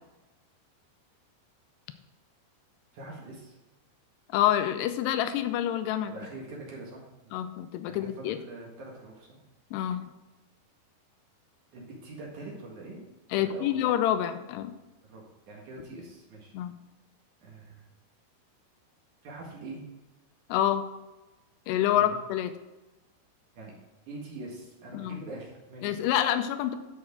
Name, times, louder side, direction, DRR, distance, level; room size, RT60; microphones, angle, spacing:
voice 1, 2.9-3.6 6.1-7.4 7.9-9.4 11.7-13.0 13.3-13.7 15.1-16.5 17.4-17.8 19.2-19.8 21.9-22.1 23.5-23.7 24.1-25.9, right 2 dB, 55° right, -2 dB, 2.6 m, -43 dB
voice 2, 4.3-6.1 7.3-8.4 9.7-10.1 13.3-14.7 16.5-16.8 20.5-20.9 21.7-22.5 24.9-25.2 25.8-26.8, left 11 dB, 80° left, 9 dB, 2.5 m, -27 dB
10.5 x 7.8 x 3.7 m, 1.0 s
omnidirectional pair, 5.2 m